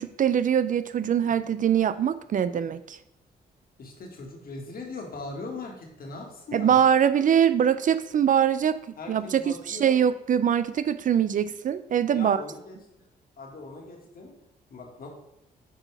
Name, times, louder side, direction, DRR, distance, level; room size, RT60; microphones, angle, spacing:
voice 1, 0.0-3.0 6.5-8.8 9.1-12.4, right 8 dB, 50° right, 13 dB, 0.4 m, -23 dB
voice 2, 3.8-6.8 9.0-10.0 12.1-12.8 13.4-14.3 14.7-15.1, left 3 dB, 60° left, 1 dB, 1.8 m, -40 dB
8.4 x 4.2 x 3.4 m, 0.82 s
cardioid pair, 75°, 18 cm